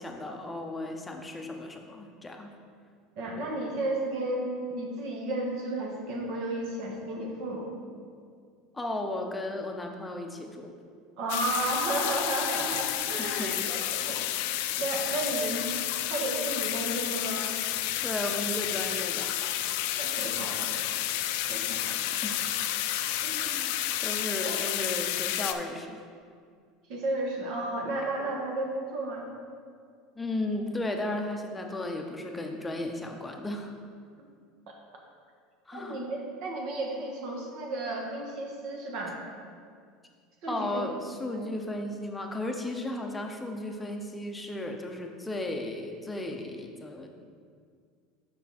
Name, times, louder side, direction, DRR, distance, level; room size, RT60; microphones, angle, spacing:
voice 1, 0.0-2.5 8.7-10.7 13.2-13.7 18.0-19.3 22.2-22.4 23.3-23.8 24.0-26.0 30.2-33.7 35.7-36.0 40.5-47.1, left 1 dB, 10° left, 3 dB, 0.7 m, -35 dB
voice 2, 3.2-7.7 11.2-15.8 16.1-17.5 20.0-20.9 21.5-22.0 23.1-23.7 24.4-24.6 26.9-29.3 34.2-34.3 34.7-34.8 35.7-39.2 40.4-40.8 41.3-41.5, right 2 dB, 60° right, 0 dB, 1.4 m, -33 dB
sound 1, 11.3-25.5, left 12 dB, 75° left, 0.4 m, -31 dB
7.1 x 5.6 x 4.2 m, 2.1 s
supercardioid pair, 135°, 0 cm